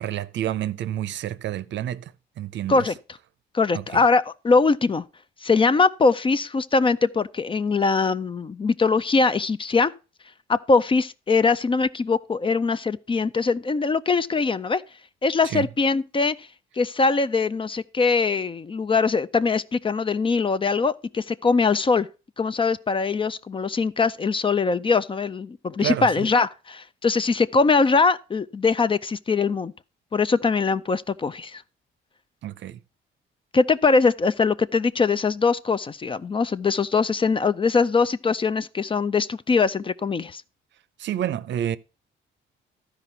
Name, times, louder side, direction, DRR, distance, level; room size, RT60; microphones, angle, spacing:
voice 1, 0.0-2.9 3.7-3.8 15.4-15.7 25.8-26.3 32.4-32.8 41.0-41.8, right 11 dB, 65° right, 0.6 m, -29 dB
voice 2, 3.5-5.0 5.4-9.9 10.5-14.8 15.2-16.4 16.8-22.1 22.4-29.7 30.1-31.6 33.5-40.4, left 4 dB, 25° left, 0.4 m, -22 dB
12.5 x 5.0 x 5.4 m
cardioid pair, 90°, 20 cm